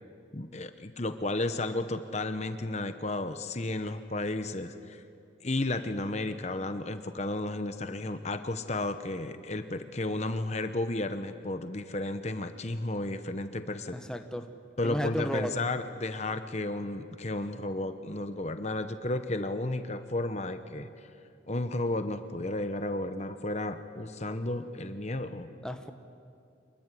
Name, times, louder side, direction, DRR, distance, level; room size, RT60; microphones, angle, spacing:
voice 1, 0.3-5.0 5.4-14.0 14.8-21.1 21.5-25.5, left 2 dB, 35° left, 9 dB, 1.0 m, -33 dB
voice 2, 13.9-14.5 14.8-15.5 25.6-25.9, equal, 5° left, 6 dB, 1.1 m, -33 dB
26.5 x 21.5 x 9.9 m, 2.5 s
head